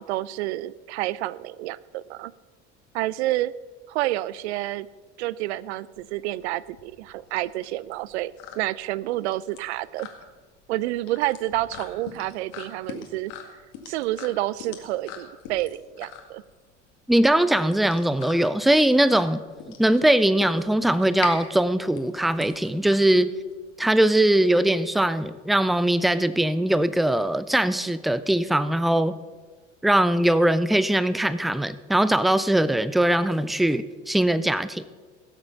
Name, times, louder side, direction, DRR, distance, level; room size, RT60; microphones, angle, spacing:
voice 1, 0.0-2.3 2.9-3.5 3.9-4.9 5.2-10.1 10.7-13.3 13.9-16.4, right 16 dB, 65° right, 20 dB, 0.5 m, -29 dB
sound 1, 5.9-23.7, left 8 dB, 60° left, 2.0 m, -42 dB
voice 2, 17.1-19.4 19.8-23.3 23.8-29.1 29.8-34.9, right 1 dB, ahead, 15 dB, 0.3 m, -21 dB
17.0 x 8.0 x 5.4 m, 1.4 s
figure-of-eight pair, 70°, 36 cm